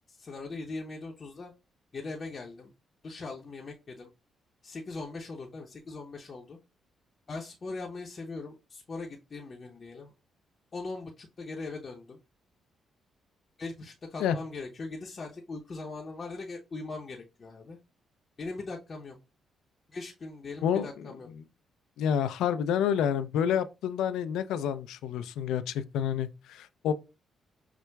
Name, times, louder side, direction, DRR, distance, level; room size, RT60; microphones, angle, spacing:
voice 1, 0.1-1.5 1.9-2.7 3.0-4.1 4.6-6.6 7.3-10.1 10.7-12.2 13.6-17.8 18.4-19.2 19.9-21.3, left 3 dB, 45° left, 0.6 m, -40 dB
voice 2, 22.0-26.9, left 8 dB, 75° left, 0.3 m, -28 dB
5.8 x 2.1 x 2.2 m
hypercardioid pair, 50°, 0 cm